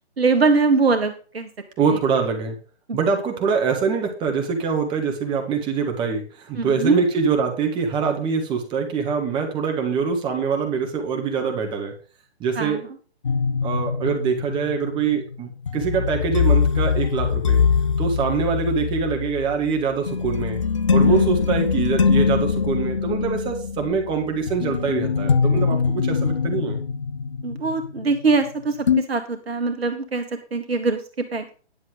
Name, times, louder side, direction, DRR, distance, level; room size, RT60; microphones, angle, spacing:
voice 1, 0.2-1.5 2.9-3.0 6.6-7.0 12.6-12.8 21.0-21.3 27.4-31.5, right 4 dB, 65° right, 6 dB, 1.6 m, -22 dB
voice 2, 1.8-2.6 2.9-11.9 12.4-12.8 13.6-17.6 18.0-20.6 20.9-26.8, right 5 dB, 15° right, 4 dB, 1.8 m, -24 dB
sound 1, 13.2-28.5 28.9-29.0, left 6 dB, 30° left, 0.4 m, -22 dB
10.5 x 7.0 x 5.2 m, 0.38 s
figure-of-eight pair, 140°, 33 cm